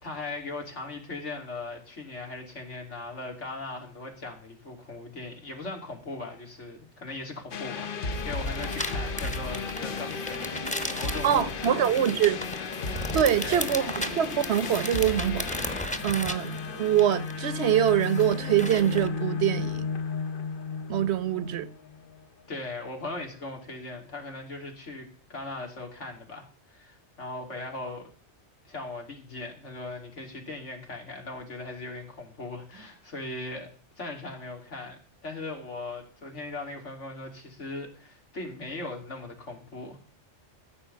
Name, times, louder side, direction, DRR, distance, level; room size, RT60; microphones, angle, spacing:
voice 1, 0.0-10.7 10.9-11.8 13.4-13.8 22.5-28.1 28.6-33.7 34.0-40.0, left 2 dB, 90° left, 3.2 m, -39 dB
sound 1, 7.5-22.2, left 4 dB, 50° left, 0.9 m, -34 dB
sound 2, 8.1-19.1, equal, 5° left, 1.1 m, -37 dB
voice 2, 11.2-12.4 13.1-15.6 16.0-19.9 20.9-21.7, right 10 dB, 70° right, 1.0 m, -24 dB
14.5 x 5.0 x 8.1 m
omnidirectional pair, 1.2 m